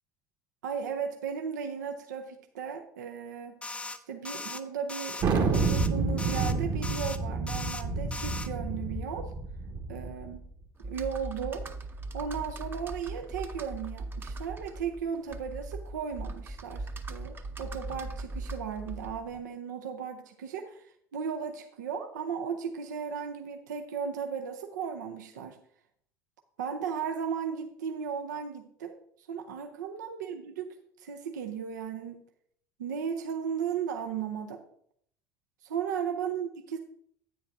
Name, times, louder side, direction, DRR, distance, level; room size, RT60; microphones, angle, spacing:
voice 1, 0.6-3.6 4.1-9.3 9.9-10.4 10.8-11.6 12.1-25.6 26.6-32.2 32.8-34.6 35.6-36.8, right 7 dB, 75° right, 5 dB, 0.6 m, -36 dB
sound 1, 3.6-4.0 4.2-4.6 4.9-5.2 5.5-5.9 6.2-6.5 6.8-7.2 7.5-7.8 8.1-8.5, left 3 dB, 10° left, 0.6 m, -38 dB
Thunder, 5.2-10.4, right 4 dB, 45° right, 1.3 m, -29 dB
Computer keyboard, 10.8-19.4, right 2 dB, 20° right, 0.7 m, -39 dB
10.0 x 8.8 x 2.6 m, 0.66 s
figure-of-eight pair, 65°, 10 cm